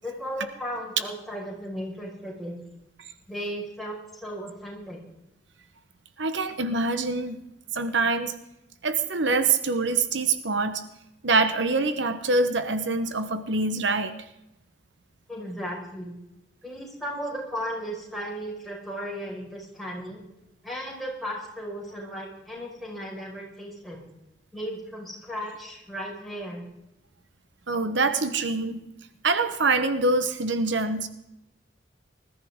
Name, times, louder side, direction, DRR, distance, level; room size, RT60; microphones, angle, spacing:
voice 1, 0.0-2.6 3.3-5.0 15.3-16.1 16.6-20.2 20.6-24.0 24.5-26.6, equal, ahead, -4 dB, 5.2 m, -35 dB
voice 2, 6.2-7.4 7.7-8.4 8.8-10.8 11.2-14.1 27.7-28.8 29.2-31.1, right 3 dB, 75° right, 9 dB, 1.1 m, -25 dB
20.5 x 14.0 x 3.7 m, 0.88 s
head